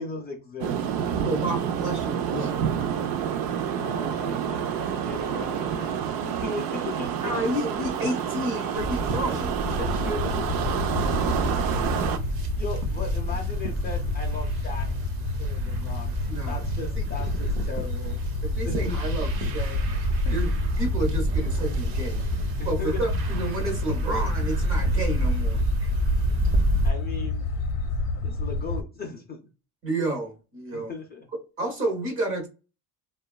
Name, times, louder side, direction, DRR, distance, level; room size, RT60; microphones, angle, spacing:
voice 1, 0.0-1.5 3.8-7.4 9.8-10.9 12.6-14.9 15.4-16.1 16.5-18.2 18.6-19.0 20.2-20.3 22.6-23.0 26.8-27.5 28.2-29.4 30.7-31.3, left 3 dB, 25° left, 0.4 m, -37 dB
sound 1, 0.6-12.2, right 8 dB, 60° right, 0.5 m, -28 dB
voice 2, 1.2-2.7 7.2-9.5 16.3-16.6 17.0-17.1 18.4-19.8 20.3-20.5 20.8-22.2 22.6-25.9 29.8-30.9 31.6-32.5, right 1 dB, 30° right, 0.9 m, -30 dB
sound 2, 8.7-26.9, right 1 dB, 85° right, 0.9 m, -28 dB
sound 3, 9.6-28.8, left 4 dB, 70° left, 0.7 m, -31 dB
3.0 x 2.3 x 2.3 m
cardioid pair, 160°, 40 cm